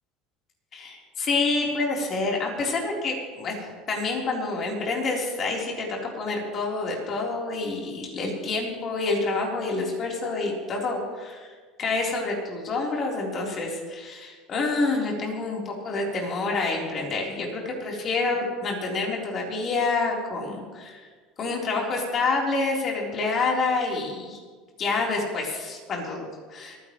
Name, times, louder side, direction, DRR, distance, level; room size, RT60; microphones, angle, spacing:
voice 1, 0.7-11.5 11.8-21.1 21.4-24.4 24.8-26.8, left 3 dB, 35° left, -2 dB, 3.7 m, -28 dB
27.5 x 10.0 x 3.1 m, 1.5 s
supercardioid pair, 130°, 0 cm